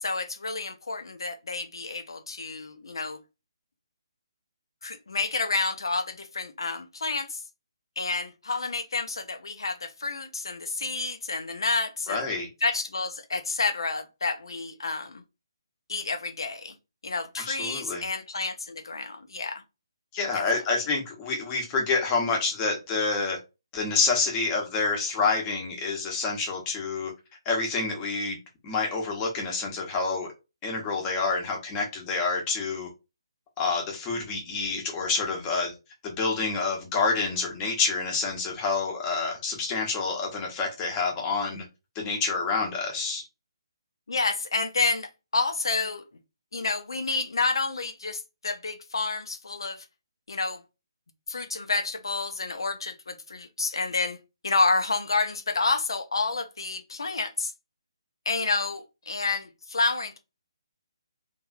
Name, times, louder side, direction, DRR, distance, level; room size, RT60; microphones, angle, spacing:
voice 1, 0.0-3.2 4.8-7.4 8.0-12.3 12.6-15.2 15.9-16.7 17.0-19.6 20.3-20.4 44.1-46.0 46.5-49.8 50.3-50.6 51.3-54.2 54.4-57.5 58.3-60.2, left 3 dB, 65° left, 0.6 m, -29 dB
voice 2, 12.1-12.5 17.5-18.0 20.1-23.4 23.7-27.1 27.4-28.4 28.6-30.3 30.6-32.9 33.6-35.7 36.0-41.6 41.9-43.3, left 4 dB, 20° left, 0.9 m, -28 dB
3.2 x 2.6 x 2.4 m
figure-of-eight pair, 140°, 3 cm